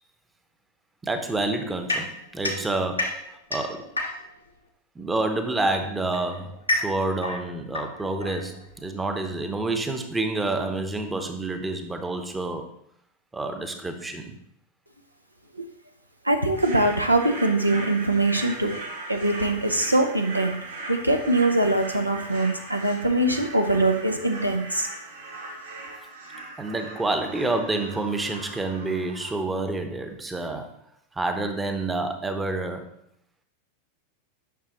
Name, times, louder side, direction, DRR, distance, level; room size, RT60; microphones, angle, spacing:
voice 1, 1.0-3.9 5.0-12.7 13.3-14.4 26.6-30.7 31.1-32.9, right 2 dB, 10° right, 6 dB, 0.9 m, -28 dB
sound 1, 1.9-4.5 5.5-8.9, left 2 dB, 85° left, 1.2 m, -31 dB
voice 2, 16.2-18.7 19.1-20.6 20.9-24.9, right 2 dB, 85° right, 5 dB, 0.7 m, -22 dB
sound 2, 16.5-29.3, right 2 dB, 70° right, 2.2 m, -39 dB
9.4 x 6.2 x 3.0 m, 0.72 s
figure-of-eight pair, 90°, 0 cm